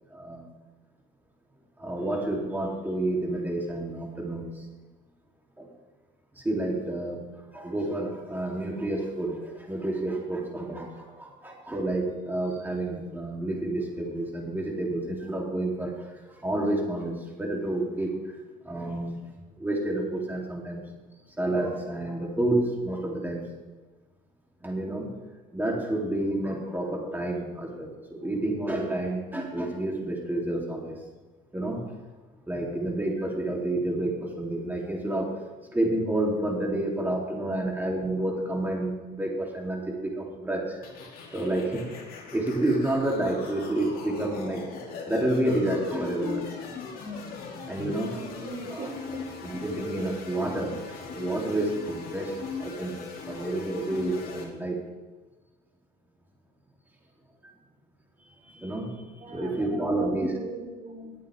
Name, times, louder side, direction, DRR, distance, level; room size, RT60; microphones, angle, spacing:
voice 1, 0.1-0.5 1.8-4.6 5.6-5.7 6.4-7.2 7.5-15.9 16.2-18.1 18.6-19.2 19.6-20.8 21.4-23.4 24.6-25.1 25.5-30.9 31.5-31.8 32.5-35.3 35.7-40.8 41.3-41.9 42.3-44.6 45.0-46.5 47.7-48.1 48.7-48.8 49.4-53.0 53.3-54.8 58.5-60.3, right 1 dB, 10° right, -1 dB, 3.2 m, -29 dB
sound 1, 40.8-54.4, left 4 dB, 60° left, 2.7 m, -39 dB
voice 2, 48.1-49.3 59.2-61.1, right 2 dB, 50° right, 0 dB, 4.3 m, -40 dB
20.5 x 8.6 x 3.6 m, 1.2 s
cardioid pair, 110°, 17 cm